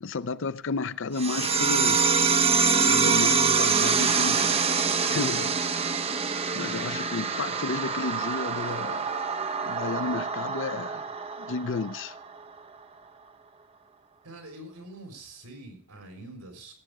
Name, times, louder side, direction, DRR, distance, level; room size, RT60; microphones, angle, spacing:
voice 1, 0.0-2.4 2.9-4.6 5.0-5.9 6.5-9.1 9.6-11.0 11.4-12.2, left 4 dB, 60° left, 0.6 m, -32 dB
sound 1, 1.2-12.2, right 5 dB, 25° right, 0.6 m, -25 dB
voice 2, 14.2-16.7, right 1 dB, 85° right, 3.8 m, -45 dB
17.5 x 8.0 x 4.7 m
head